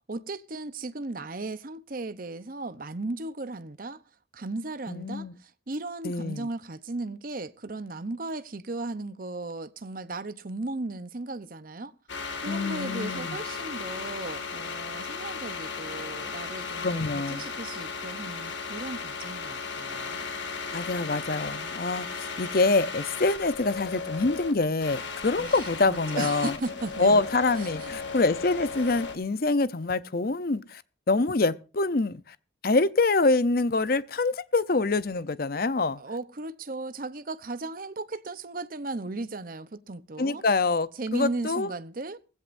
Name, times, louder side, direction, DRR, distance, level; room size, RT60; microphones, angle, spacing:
voice 1, 0.1-4.0 4.3-11.9 12.4-20.3 25.4-27.2 27.6-28.0 36.0-40.4 41.0-42.2, right 2 dB, 45° right, 0.8 m, -36 dB
voice 2, 4.9-5.3 6.0-6.5 12.5-13.4 16.8-17.5 20.7-26.5 27.0-30.8 31.1-32.4 32.6-36.0 40.2-41.7, left 3 dB, 50° left, 0.7 m, -25 dB
sound 1, 12.1-29.1, left 4 dB, 70° left, 2.1 m, -36 dB
19.5 x 16.0 x 2.6 m
head